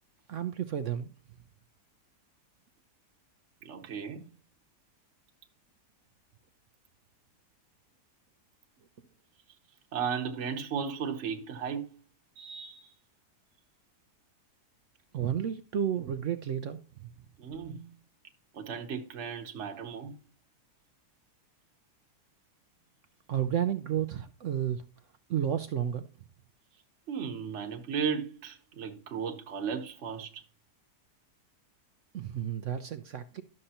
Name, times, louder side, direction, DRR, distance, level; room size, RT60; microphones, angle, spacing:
voice 1, 0.3-1.1 15.1-17.1 23.3-24.8 25.3-26.1 32.1-33.4, right 9 dB, 65° right, 0.8 m, -31 dB
voice 2, 3.6-4.2 9.9-11.9 12.4-12.9 17.4-17.9 18.5-20.1 27.1-30.4, right 6 dB, 50° right, 1.3 m, -35 dB
12.0 x 6.6 x 2.8 m
omnidirectional pair, 1.7 m